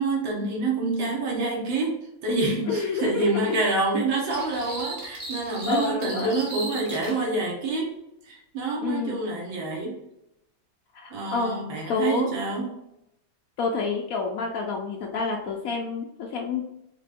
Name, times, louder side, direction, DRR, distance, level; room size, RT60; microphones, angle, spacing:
voice 1, 0.0-7.9 8.2-10.0 11.1-12.7, right 3 dB, 80° right, -1 dB, 1.9 m, -27 dB
voice 2, 2.7-3.6 5.7-6.4 8.8-9.2 10.9-11.6 11.9-12.3 13.6-16.6, left 4 dB, 85° left, 0 dB, 0.7 m, -28 dB
sound 1, 4.3-7.2, right 1 dB, 30° right, 0.7 m, -37 dB
5.0 x 3.3 x 2.5 m, 0.85 s
omnidirectional pair, 2.1 m